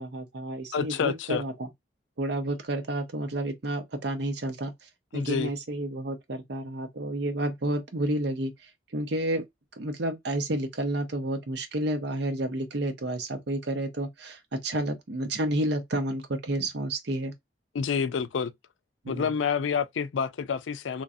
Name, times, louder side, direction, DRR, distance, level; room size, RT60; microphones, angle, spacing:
voice 1, 0.0-1.7 2.2-9.4 9.8-17.3 19.0-19.3, right 1 dB, 65° right, 0.8 m, -30 dB
voice 2, 0.7-1.4 5.1-5.5 17.7-18.5 19.1-21.0, left 6 dB, 85° left, 0.4 m, -28 dB
3.0 x 2.4 x 2.6 m
head